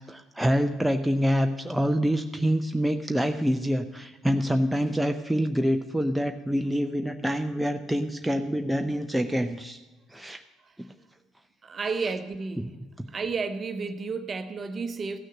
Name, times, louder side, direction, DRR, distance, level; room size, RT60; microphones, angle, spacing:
voice 1, 0.1-9.8 10.1-10.4 12.0-12.1 12.6-12.7, equal, 5° right, 6 dB, 0.5 m, -26 dB
voice 2, 11.6-12.7 13.1-15.2, right 4 dB, 35° right, 9 dB, 0.8 m, -31 dB
14.0 x 6.4 x 6.3 m, 1.2 s
figure-of-eight pair, 55°, 0 cm